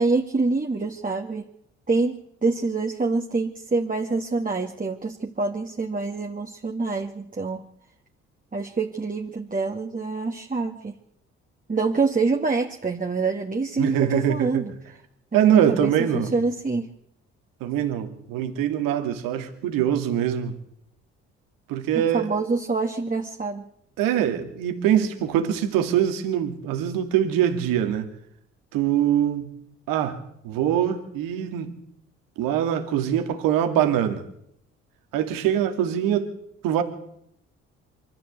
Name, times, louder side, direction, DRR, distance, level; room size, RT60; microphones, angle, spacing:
voice 1, 0.0-1.5 1.9-7.6 8.5-10.9 11.7-14.7 15.3-16.9 21.9-23.7, right 3 dB, 25° right, 2.2 m, -26 dB
voice 2, 13.8-14.7 15.3-16.3 17.6-20.5 21.7-22.3 24.0-28.1 28.7-29.5 29.9-30.2 30.4-31.7 32.4-34.2 35.1-36.3 36.6-36.8, right 10 dB, 75° right, 2.6 m, -23 dB
24.5 x 13.5 x 8.2 m
hypercardioid pair, 50°, 34 cm